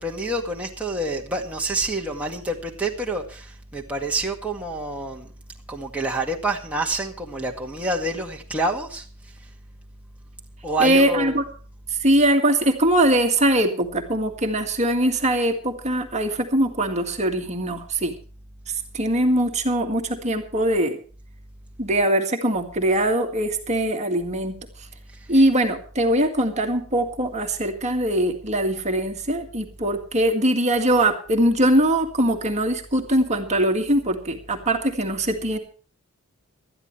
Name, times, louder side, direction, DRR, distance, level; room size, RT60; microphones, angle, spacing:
voice 1, 0.0-5.3 5.7-9.1 10.6-11.4, right 2 dB, 5° right, -1 dB, 1.9 m, -27 dB
voice 2, 10.8-11.4 11.9-18.1 18.9-21.0 21.8-24.5 25.3-35.6, right 1 dB, 30° right, 4 dB, 1.9 m, -21 dB
19.5 x 13.0 x 3.2 m, 0.40 s
head